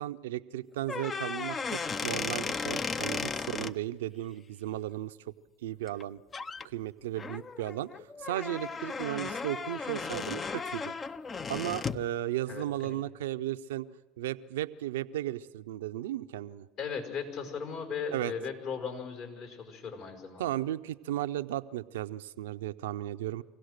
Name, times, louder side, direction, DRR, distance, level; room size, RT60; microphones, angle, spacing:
voice 1, 0.0-5.3 5.6-6.2 6.6-10.9 11.5-13.9 14.2-16.7 18.1-18.3 20.4-23.4, right 13 dB, 80° right, 12 dB, 0.6 m, -35 dB
sound 1, 0.8-3.7 5.9-6.0 6.3-6.7 7.2-12.1, left 5 dB, 30° left, 0.7 m, -35 dB
voice 2, 12.5-13.0 16.8-20.6, left 6 dB, 60° left, 3 dB, 5.4 m, -37 dB
25.0 x 16.5 x 6.6 m, 1.3 s
hypercardioid pair, 80°, 0 cm